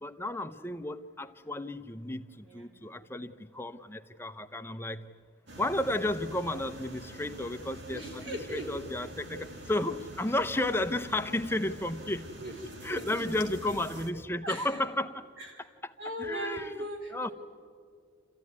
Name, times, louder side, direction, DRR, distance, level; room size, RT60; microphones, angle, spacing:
voice 1, 0.0-5.1 5.6-9.4 9.7-12.2 12.8-15.2 16.2-16.7 17.1-17.3, left 1 dB, 15° left, 8 dB, 0.7 m, -33 dB
sound 1, 5.5-14.1, right 1 dB, 65° right, 1.9 m, -46 dB
voice 2, 7.9-8.8 9.3-9.4 12.4-13.5 14.4-14.8 15.4-15.6 16.0-17.3, right 1 dB, 85° right, 1 dB, 5.0 m, -39 dB
28.5 x 14.0 x 9.6 m, 2.1 s
head